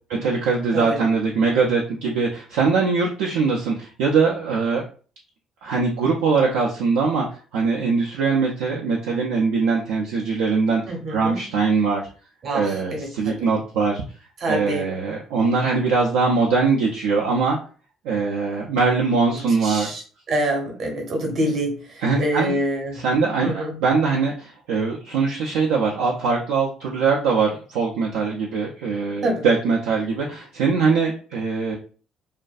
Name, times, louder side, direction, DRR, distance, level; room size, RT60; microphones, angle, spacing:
voice 1, 0.2-4.8 5.6-7.3 7.5-10.8 11.1-12.0 12.5-14.0 14.5-17.6 18.0-19.9 22.0-22.6 23.0-31.8, right 4 dB, 70° right, -3 dB, 0.4 m, -22 dB
voice 2, 10.9-11.4 12.4-13.5 14.4-14.9 19.6-23.0 23.4-23.7 29.2-29.4, right 1 dB, 50° right, 2 dB, 0.9 m, -26 dB
2.4 x 2.2 x 2.4 m, 0.39 s
figure-of-eight pair, 50°, 0 cm